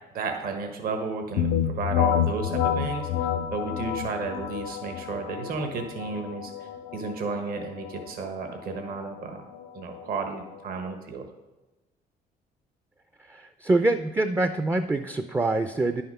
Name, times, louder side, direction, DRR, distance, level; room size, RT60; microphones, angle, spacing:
voice 1, 0.1-9.4 9.7-11.2, right 4 dB, 60° right, 4 dB, 1.1 m, -33 dB
sound 1, 1.4-10.9, left 9 dB, 85° left, 0.5 m, -30 dB
voice 2, 13.3-16.0, right 2 dB, 15° right, 9 dB, 0.4 m, -25 dB
10.0 x 5.7 x 5.4 m, 1.1 s
cardioid pair, 110°, 17 cm